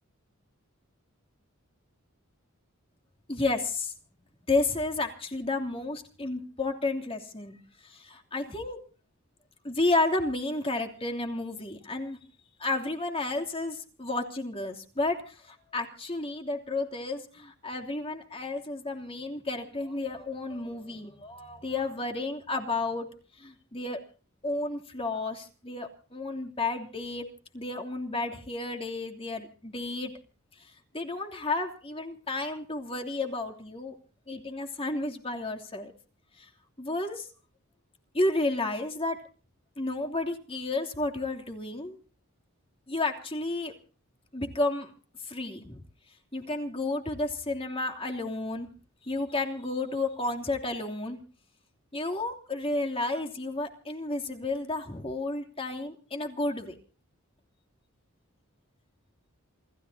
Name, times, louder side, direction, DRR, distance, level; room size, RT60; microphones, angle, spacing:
voice 1, 3.3-3.9 4.5-7.6 7.8-8.8 9.6-12.2 12.6-23.1 23.4-24.0 24.4-27.3 27.5-30.1 30.6-33.9 34.3-35.9 36.4-36.5 36.8-37.3 38.1-39.2 39.8-42.0 42.9-43.7 44.3-44.9 45.2-45.8 46.3-48.7 49.0-51.2 51.9-56.8, left 2 dB, 25° left, 2 dB, 3.0 m, -32 dB
28.0 x 16.5 x 2.8 m, 0.39 s
head